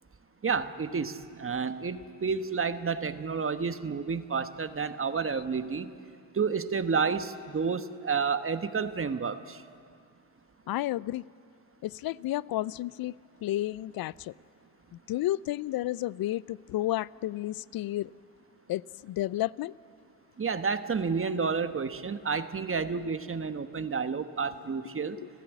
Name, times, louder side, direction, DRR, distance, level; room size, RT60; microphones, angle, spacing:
voice 1, 0.4-5.9 6.3-9.6 20.4-25.2, right 5 dB, 25° right, 11 dB, 1.2 m, -30 dB
voice 2, 10.7-11.2 11.8-13.1 13.4-14.3 15.1-18.1 18.7-19.7 25.2-25.3, left 15 dB, 50° left, 21 dB, 0.5 m, -31 dB
29.5 x 15.0 x 8.2 m, 2.3 s
hypercardioid pair, 60°, 49 cm